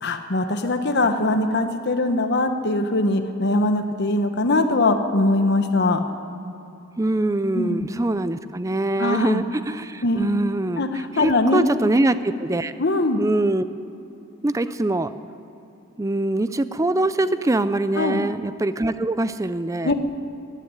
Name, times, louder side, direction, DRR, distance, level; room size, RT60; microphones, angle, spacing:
voice 1, 0.0-6.0 7.5-7.9 9.0-9.4 10.0-10.3 10.8-11.6 12.8-13.2 17.9-18.2 19.8-19.9, left 2 dB, 50° left, 6 dB, 0.9 m, -21 dB
voice 2, 7.0-12.7 13.2-13.6 14.4-15.1 16.0-19.9, right 2 dB, 15° right, 13 dB, 0.4 m, -23 dB
14.5 x 10.0 x 10.0 m, 2.9 s
head